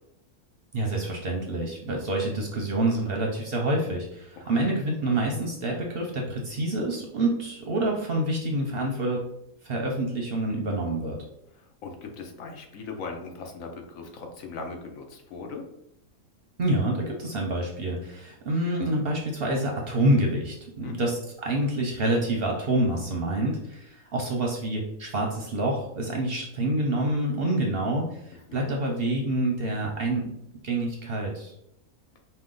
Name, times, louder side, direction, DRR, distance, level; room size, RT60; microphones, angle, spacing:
voice 1, 0.7-9.2 9.6-11.2 16.6-30.3 30.6-31.5, right 1 dB, 55° right, 0 dB, 0.7 m, -27 dB
voice 2, 11.6-15.6 20.8-21.1 28.5-28.7, left 4 dB, 70° left, 3 dB, 1.1 m, -39 dB
5.0 x 2.3 x 3.8 m, 0.79 s
omnidirectional pair, 1.5 m